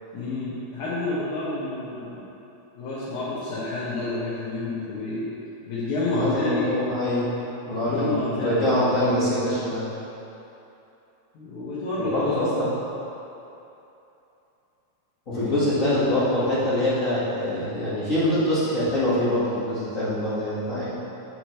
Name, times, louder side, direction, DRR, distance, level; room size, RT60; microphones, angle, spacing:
voice 1, 0.1-2.2 2.8-5.3 5.7-6.7 7.7-8.9 11.3-12.7 15.3-15.5, left 2 dB, 75° left, -11 dB, 2.9 m, -29 dB
voice 2, 6.1-7.3 7.7-9.9 12.0-12.7 15.3-20.9, left 1 dB, 30° left, -11 dB, 1.7 m, -24 dB
9.0 x 7.8 x 3.2 m, 2.9 s
omnidirectional pair, 3.4 m